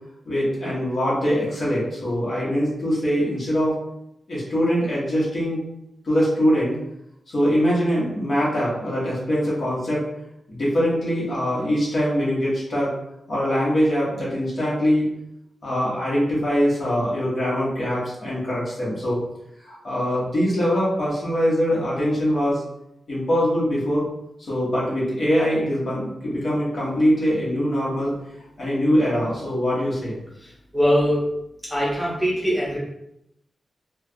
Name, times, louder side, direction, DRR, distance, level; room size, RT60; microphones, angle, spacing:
voice 1, 0.2-3.8 4.3-5.6 6.0-6.8 7.3-10.0 10.5-12.9 13.3-15.1 15.6-19.2 19.6-22.6 23.1-24.0 24.5-28.1 28.6-30.2, equal, 50° left, -6 dB, 1.2 m, -22 dB
voice 2, 30.7-31.2 31.7-32.8, equal, ahead, -8 dB, 0.8 m, -21 dB
4.4 x 2.3 x 2.2 m, 0.81 s
wide cardioid pair, 170°, 0 cm